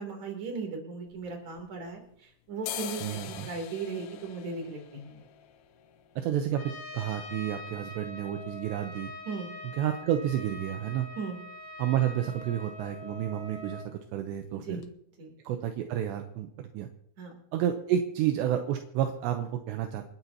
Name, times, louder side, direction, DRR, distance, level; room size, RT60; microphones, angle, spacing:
voice 1, 0.0-5.2 9.3-9.5 11.2-11.4 14.5-14.8 15.2-15.3 17.2-17.3, right 4 dB, 40° right, 2 dB, 3.9 m, -37 dB
sound 1, 1.1-2.1 2.5-10.2 10.5-10.6 10.9-11.4 11.7-12.0 12.2-12.5 12.7-13.5 13.8-14.0 14.4-14.5 14.8-14.9, left 11 dB, 80° left, 2.3 m, -45 dB
voice 2, 3.0-3.5 6.2-9.1 9.8-11.1 11.8-14.8 15.4-16.9 17.5-20.0, right 10 dB, 80° right, 6 dB, 2.8 m, -30 dB
Trumpet, 6.5-13.9, left 2 dB, 55° left, 4.8 m, -44 dB
28.5 x 12.0 x 2.9 m, 0.71 s
omnidirectional pair, 5.4 m